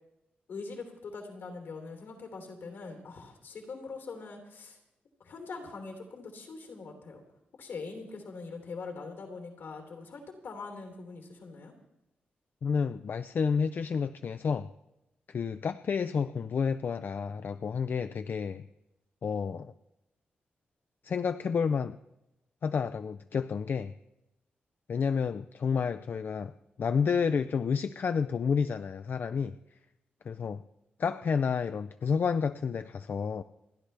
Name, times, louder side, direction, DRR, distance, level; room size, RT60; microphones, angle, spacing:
voice 1, 0.5-4.8 5.2-7.2 7.6-11.7, left 4 dB, 80° left, 3 dB, 3.2 m, -42 dB
voice 2, 12.6-14.7 15.3-18.6 19.2-19.7 21.0-22.0 22.6-23.9 24.9-26.5 26.8-29.5 30.3-30.6 31.0-33.4, left 6 dB, 60° left, 11 dB, 0.4 m, -30 dB
28.5 x 10.5 x 3.4 m, 0.93 s
cardioid pair, 75°, 4 cm